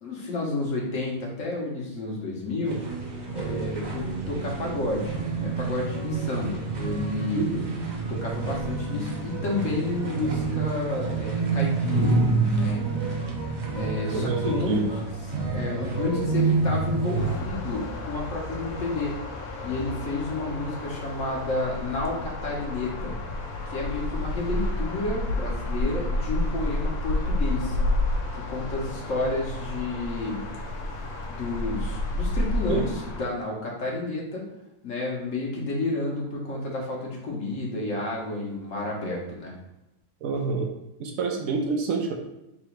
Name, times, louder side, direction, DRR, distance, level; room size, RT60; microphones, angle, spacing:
voice 1, 0.0-2.8 3.3-12.2 12.5-12.8 13.7-14.9 15.5-19.2 19.6-23.1 23.7-27.8 28.3-30.4 31.3-34.4 34.8-39.5, left 2 dB, 60° left, -2 dB, 1.3 m, -30 dB
sound 1, 2.6-17.4, right 3 dB, 40° right, 0.6 m, -28 dB
voice 2, 14.1-14.9 32.7-32.8 40.2-40.7 41.0-42.1, right 5 dB, 70° right, 2 dB, 1.0 m, -27 dB
sound 2, 17.2-33.2, left 1 dB, 75° left, 1.2 m, -30 dB
3.8 x 3.0 x 4.5 m, 0.91 s
omnidirectional pair, 1.6 m